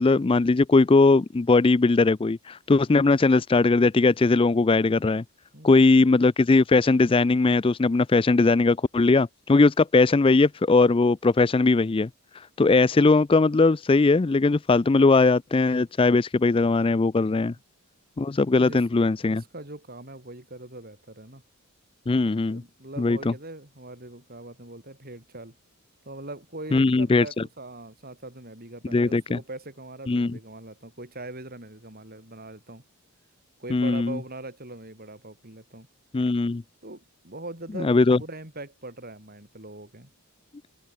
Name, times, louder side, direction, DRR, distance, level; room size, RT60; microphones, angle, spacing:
voice 1, 0.0-5.2 5.6-12.1 12.6-17.5 18.2-19.4 22.1-22.6 23.0-23.3 26.7-27.3 28.9-29.4 30.1-30.4 33.7-34.2 36.1-36.6 37.7-38.2, left 3 dB, 25° left, 0.4 m, -20 dB
voice 2, 5.5-5.9 18.6-18.8 19.3-21.4 22.4-25.5 26.0-32.8 33.6-35.9 36.8-40.1, right 2 dB, 40° right, 6.0 m, -41 dB
head